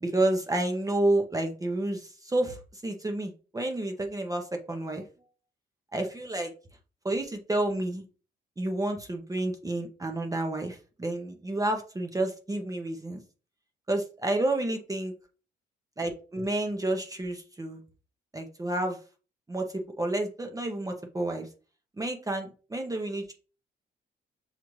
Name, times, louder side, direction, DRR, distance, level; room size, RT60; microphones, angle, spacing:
voice 1, 0.0-5.0 5.9-6.5 7.0-8.0 8.6-13.2 13.9-15.1 16.0-17.8 18.3-19.0 19.5-21.5 22.0-23.3, right 1 dB, 15° right, 4 dB, 0.7 m, -30 dB
5.8 x 2.4 x 3.1 m, 0.37 s
cardioid pair, 90°, 20 cm